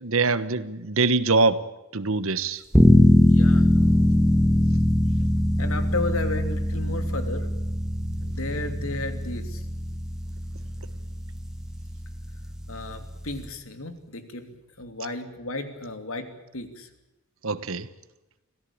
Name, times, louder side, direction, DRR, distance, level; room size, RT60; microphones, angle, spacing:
voice 1, 0.0-1.7 1.9-2.6 17.4-17.9, right 3 dB, 70° right, 15 dB, 1.2 m, -23 dB
sound 1, 2.7-13.5, left 1 dB, 5° right, 2.1 m, -22 dB
voice 2, 3.3-3.7 5.6-7.5 7.9-9.6 12.7-16.9, left 2 dB, 75° left, 8 dB, 3.0 m, -34 dB
25.5 x 17.0 x 8.8 m, 0.98 s
head